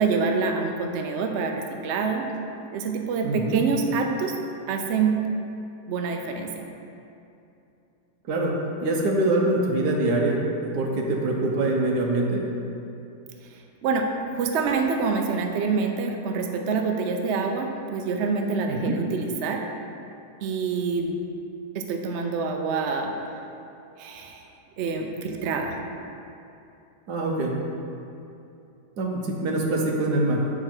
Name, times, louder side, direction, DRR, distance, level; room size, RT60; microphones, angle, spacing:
voice 1, 0.0-2.3 2.7-4.3 4.7-5.2 5.9-6.7 13.8-19.6 20.4-21.2 21.7-23.1 24.0-24.4 24.8-25.8, right 5 dB, 90° right, 3 dB, 0.6 m, -26 dB
voice 2, 3.2-3.6 8.3-10.4 10.7-12.4 18.7-18.9 27.1-27.5 29.0-30.4, right 2 dB, 65° right, 0 dB, 1.3 m, -24 dB
6.9 x 4.9 x 4.4 m, 2.7 s
omnidirectional pair, 2.0 m